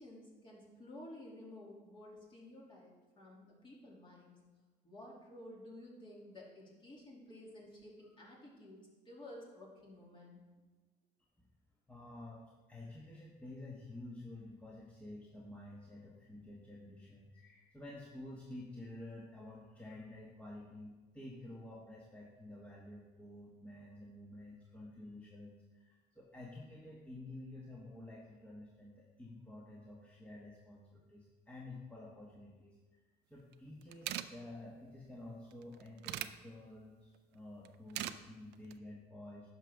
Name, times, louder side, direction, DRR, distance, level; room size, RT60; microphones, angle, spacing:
voice 1, 0.0-4.4 4.8-10.4, left 1 dB, 30° left, -3 dB, 2.6 m, -53 dB
voice 2, 11.9-32.8 33.3-39.5, left 1 dB, 10° left, -4 dB, 1.2 m, -51 dB
sound 1, 33.5-33.6 33.8-34.3 35.5-36.3 37.6-38.2 38.5-38.8, right 14 dB, 85° right, 0.4 m, -40 dB
10.5 x 6.3 x 3.5 m, 1.3 s
cardioid pair, 110°, 17 cm